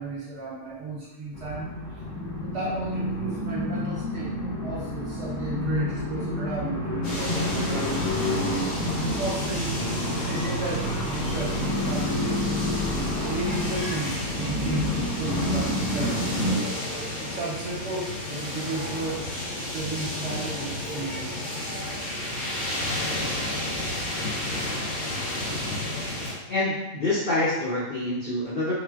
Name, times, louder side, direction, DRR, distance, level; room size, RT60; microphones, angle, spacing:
voice 1, 0.0-2.0 2.4-12.7 13.3-19.2 19.6-21.4, right 2 dB, 60° right, -6 dB, 0.8 m, -35 dB
sound 1, 1.3-16.6, left 1 dB, 35° left, 1.5 m, -29 dB
sound 2, 7.0-26.3, left 1 dB, 65° left, 1.5 m, -32 dB
voice 2, 26.5-28.7, left 2 dB, 90° left, -9 dB, 0.4 m, -26 dB
3.7 x 2.0 x 2.3 m, 1.0 s
omnidirectional pair, 1.8 m